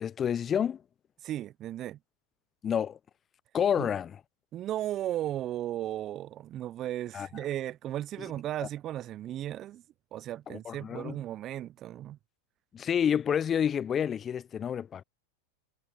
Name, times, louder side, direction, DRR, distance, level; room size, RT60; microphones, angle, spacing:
voice 1, 0.0-0.8 2.6-3.0 3.5-4.2 7.1-7.3 10.5-11.2 12.7-15.0, left 8 dB, 30° left, 0.5 m, -29 dB
voice 2, 1.2-2.0 3.8-3.9 4.5-9.8 10.1-12.2, right 12 dB, 40° right, 0.4 m, -35 dB
hypercardioid pair, 95°, 0 cm